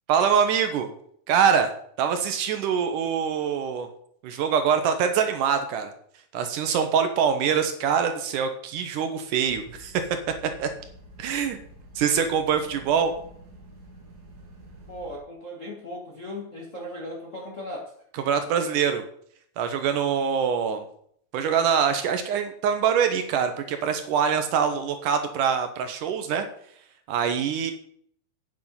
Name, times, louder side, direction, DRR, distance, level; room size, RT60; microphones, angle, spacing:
voice 1, 0.1-0.9 1.3-1.7 2.0-3.9 4.2-5.9 6.3-9.9 10.6-10.7 11.2-11.6 12.0-13.1 18.3-19.0 19.6-20.8 21.3-26.5 27.1-27.7, right 7 dB, 70° right, 7 dB, 2.3 m, -24 dB
sound 1, 9.4-15.2, equal, 40° right, 1.6 m, -48 dB
voice 2, 14.9-18.0, left 1 dB, 35° left, -2 dB, 1.3 m, -37 dB
9.3 x 7.4 x 5.6 m, 0.64 s
omnidirectional pair, 4.1 m